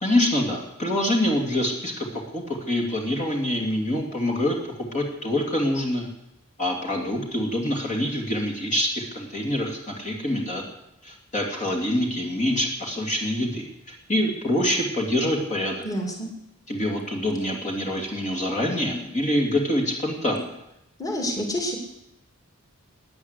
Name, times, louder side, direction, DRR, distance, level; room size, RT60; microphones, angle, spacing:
voice 1, 0.0-2.1 2.3-4.6 4.9-6.1 6.6-10.6 11.0-15.8 16.7-20.5, left 1 dB, 35° left, 1 dB, 2.7 m, -25 dB
voice 2, 15.8-16.3 21.0-21.8, equal, 15° left, 1 dB, 2.7 m, -28 dB
17.0 x 9.8 x 8.2 m, 0.85 s
head